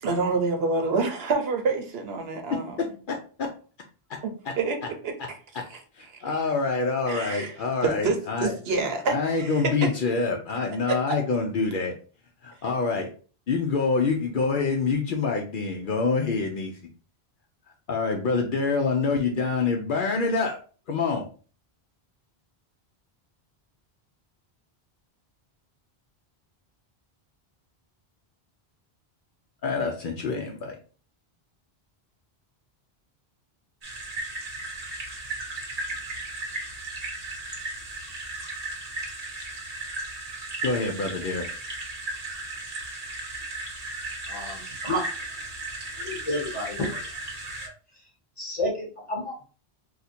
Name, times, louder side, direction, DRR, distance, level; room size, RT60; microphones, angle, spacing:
voice 1, 0.0-2.8 4.2-4.8 5.0-5.4 7.1-7.5 7.8-9.5 9.8-9.9 10.9-11.0, right 4 dB, 75° right, 4 dB, 0.9 m, -27 dB
voice 2, 3.1-3.5 4.1-4.2 4.4-4.5 5.2-5.3 5.9-8.5 9.1-11.9 12.4-13.1 13.5-16.8 17.9-20.6 20.9-21.2 29.6-30.8 40.6-41.5, left 4 dB, 60° left, 2 dB, 0.6 m, -26 dB
sound 1, 33.8-47.7, right 2 dB, 40° right, 0.9 m, -35 dB
voice 3, 44.3-45.0 46.0-47.0 48.4-49.4, left 1 dB, 30° left, -2 dB, 1.3 m, -30 dB
2.5 x 2.5 x 4.1 m, 0.39 s
omnidirectional pair, 1.1 m